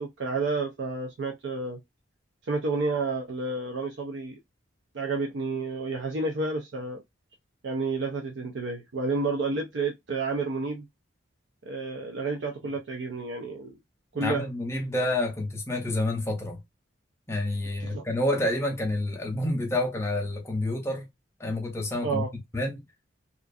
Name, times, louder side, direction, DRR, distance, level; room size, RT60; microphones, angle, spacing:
voice 1, 0.0-1.8 2.4-4.4 4.9-7.0 7.6-10.9 11.6-13.7 14.1-14.5 17.8-18.1 22.0-22.3, right 3 dB, 60° right, 0.4 m, -30 dB
voice 2, 14.1-16.6 17.3-21.1 21.4-22.3 22.5-22.8, left 1 dB, 15° left, 0.6 m, -28 dB
2.5 x 2.4 x 2.3 m
head